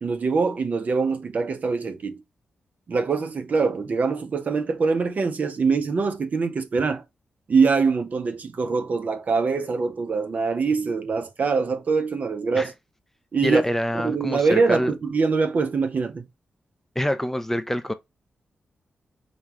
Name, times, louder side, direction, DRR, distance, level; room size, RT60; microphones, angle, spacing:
voice 1, 0.0-2.2 2.9-7.0 7.5-12.7 13.3-13.6 14.0-16.2, right 4 dB, 55° right, 0.6 m, -23 dB
voice 2, 13.4-14.9 17.0-17.9, left 1 dB, 10° left, 0.5 m, -25 dB
5.1 x 2.3 x 2.9 m
cardioid pair, 60°, 3 cm